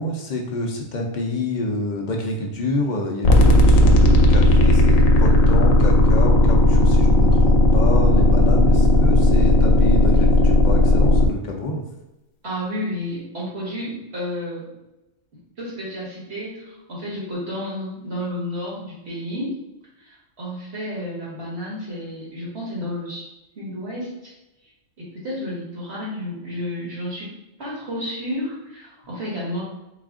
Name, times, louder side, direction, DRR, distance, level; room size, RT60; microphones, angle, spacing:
voice 1, 0.0-11.8, left 2 dB, 50° left, 1 dB, 0.6 m, -27 dB
sound 1, 3.2-11.3, left 1 dB, 80° left, 1.0 m, -15 dB
voice 2, 12.4-14.7 15.6-19.6 20.0-23.2 23.6-24.3 25.0-27.3 27.6-29.6, left 1 dB, 50° right, -6 dB, 1.8 m, -31 dB
4.1 x 2.4 x 3.6 m, 0.95 s
omnidirectional pair, 1.4 m